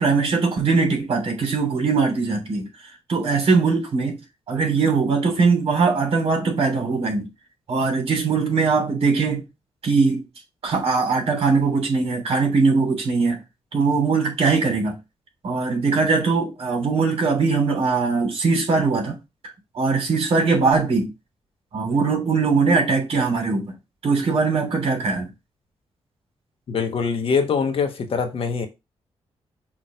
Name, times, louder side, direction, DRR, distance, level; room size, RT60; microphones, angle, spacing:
voice 1, 0.0-2.7 3.1-4.2 4.5-7.3 7.7-9.4 9.8-10.2 10.6-13.4 13.7-15.0 15.4-19.2 19.4-21.1 21.7-23.7 24.0-25.3, right 4 dB, 60° right, 3.1 m, -21 dB
voice 2, 26.7-28.7, left 5 dB, 60° left, 1.3 m, -23 dB
6.0 x 3.0 x 5.1 m
cardioid pair, 115°, 11 cm